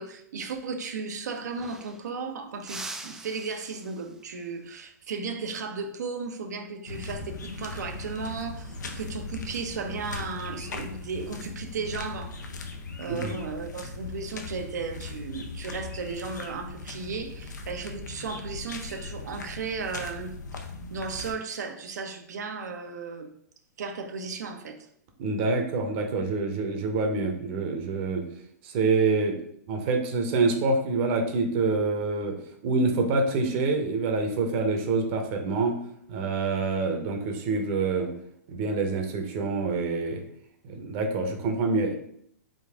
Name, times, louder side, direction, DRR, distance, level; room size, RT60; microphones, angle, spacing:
voice 1, 0.0-12.4 13.0-20.3 20.9-23.3 23.8-24.8, right 4 dB, 75° right, 5 dB, 0.7 m, -35 dB
glass drop malthouse too, 1.0-1.1 1.3-2.2 2.6-4.4 6.9-7.2 8.6-9.0, right 2 dB, 5° right, 0.3 m, -43 dB
sound 1, 6.9-21.3, left 3 dB, 85° left, 0.6 m, -39 dB
voice 2, 25.2-28.2 28.6-29.4 29.7-32.3 32.6-35.8 36.1-38.1 38.5-40.2 40.6-41.9, right 3 dB, 40° right, 3 dB, 0.8 m, -26 dB
3.8 x 2.4 x 3.5 m, 0.66 s
hypercardioid pair, 135°, 9 cm